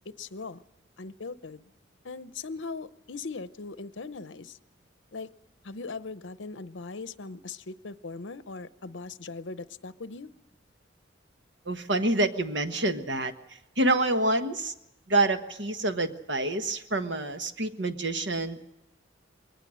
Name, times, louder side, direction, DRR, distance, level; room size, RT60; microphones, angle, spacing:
voice 1, 0.2-0.6 1.0-1.6 2.0-4.6 5.1-5.3 5.6-10.3, left 4 dB, 70° left, 14 dB, 0.8 m, -39 dB
voice 2, 11.6-13.3 13.8-14.7 15.1-18.6, right 2 dB, 70° right, 7 dB, 1.5 m, -27 dB
22.0 x 18.5 x 6.4 m, 0.91 s
head